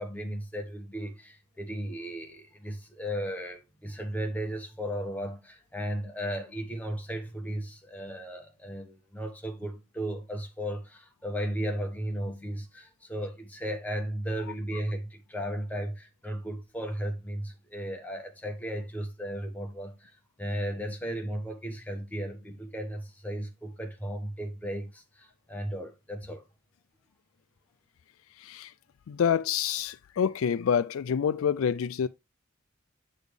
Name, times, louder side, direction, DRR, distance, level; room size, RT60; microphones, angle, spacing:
voice 1, 0.0-26.4, equal, 10° left, 1.1 m, -35 dB
voice 2, 28.4-28.7 29.1-32.1, left 7 dB, 85° left, 0.4 m, -27 dB
8.2 x 4.2 x 3.3 m
head